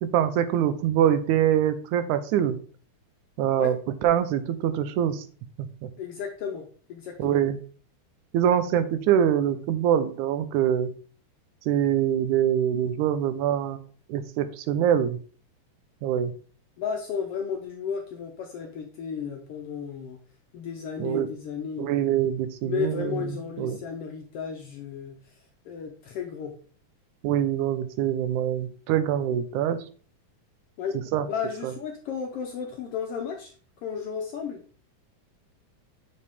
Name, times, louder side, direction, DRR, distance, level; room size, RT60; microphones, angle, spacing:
voice 1, 0.0-2.6 3.4-3.8 4.0-5.2 7.2-7.6 8.3-10.9 11.7-13.8 14.1-15.2 16.0-16.3 21.0-21.3 21.8-23.3 23.6-23.8 27.2-29.8 31.1-31.3, right 10 dB, 85° right, 11 dB, 2.1 m, -24 dB
voice 2, 6.0-7.4 16.8-20.2 20.5-21.9 22.6-25.4 25.6-26.5 30.8-33.5 33.8-34.6, left 6 dB, 75° left, 3 dB, 1.4 m, -33 dB
6.7 x 5.1 x 3.5 m, 0.41 s
omnidirectional pair, 3.4 m